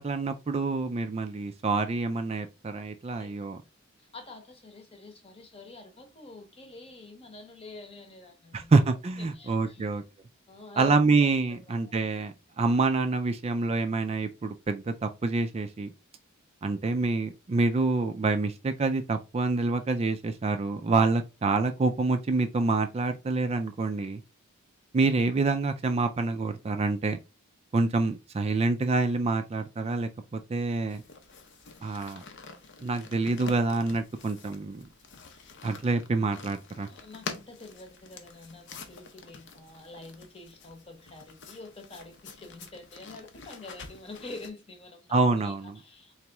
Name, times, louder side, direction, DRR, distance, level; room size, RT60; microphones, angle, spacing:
voice 1, 0.0-3.6 8.5-10.0 10.8-15.9 16.6-24.2 24.9-27.2 27.7-31.0 31.8-32.2 32.8-34.9 35.6-36.9 45.1-45.8, right 3 dB, 30° right, 0.4 m, -27 dB
voice 2, 4.1-8.7 9.2-9.9 10.5-11.9 36.9-46.2, left 2 dB, 30° left, 0.9 m, -47 dB
sound 1, 30.9-44.5, left 4 dB, 60° left, 0.7 m, -46 dB
3.9 x 3.0 x 3.4 m
head